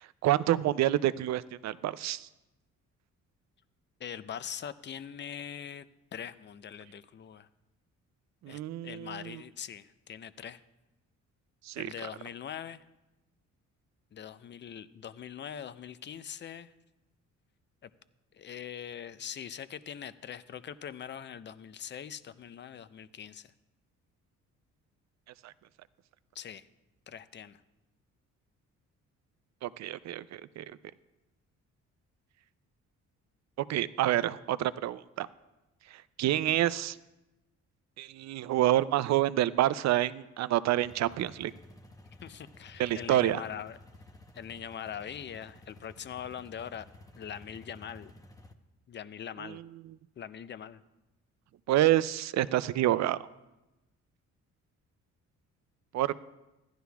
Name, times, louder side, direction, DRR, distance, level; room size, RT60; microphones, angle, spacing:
voice 1, 0.2-2.3 8.4-9.2 11.7-11.9 25.4-25.5 29.6-30.6 33.7-35.3 36.2-37.0 38.0-41.5 42.8-43.4 51.7-53.2 55.9-56.1, right 13 dB, 65° right, 16 dB, 0.5 m, -27 dB
voice 2, 4.0-5.9 6.1-7.5 8.5-10.6 11.8-12.8 14.1-16.7 17.8-17.9 18.3-23.5 26.3-26.7 27.1-27.6 42.2-43.8 44.3-46.9 47.2-48.1 48.9-49.6 50.2-50.8, left 8 dB, 35° left, 15 dB, 0.5 m, -42 dB
sound 1, 40.8-48.5, left 2 dB, 10° left, 0.8 m, -53 dB
15.0 x 11.0 x 2.3 m, 1.0 s
cardioid pair, 90°, 30 cm